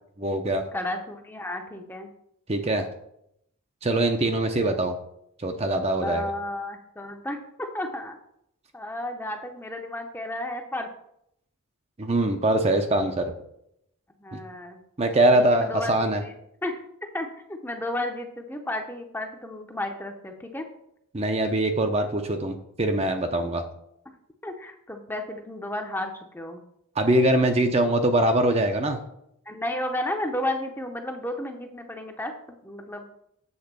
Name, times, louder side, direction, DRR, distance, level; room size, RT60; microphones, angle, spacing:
voice 1, 0.2-0.6 2.5-2.9 3.8-5.0 5.4-6.2 12.0-13.3 14.3-14.4 15.0-16.2 21.1-23.6 27.0-29.0, right 1 dB, 25° right, 5 dB, 0.6 m, -23 dB
voice 2, 0.7-2.1 6.0-8.2 8.7-10.9 14.2-14.8 15.3-16.3 16.6-16.8 17.1-20.7 24.1-24.2 24.4-26.6 27.9-28.0 29.5-32.3 32.6-33.1, left 1 dB, 10° left, 4 dB, 0.7 m, -33 dB
8.1 x 3.7 x 6.7 m, 0.75 s
head